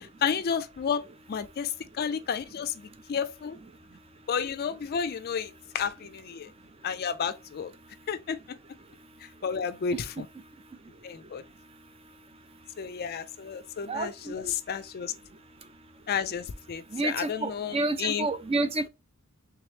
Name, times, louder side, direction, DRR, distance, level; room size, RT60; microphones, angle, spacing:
voice 1, 0.0-1.0 1.3-3.6 4.3-6.5 6.8-7.7 8.1-8.6 9.2-10.3 11.0-11.4 12.8-15.1 16.1-18.3, left 7 dB, 45° left, 0.4 m, -32 dB
voice 2, 13.9-14.5 16.9-18.9, right 2 dB, 25° right, 0.4 m, -29 dB
3.5 x 3.0 x 3.1 m
head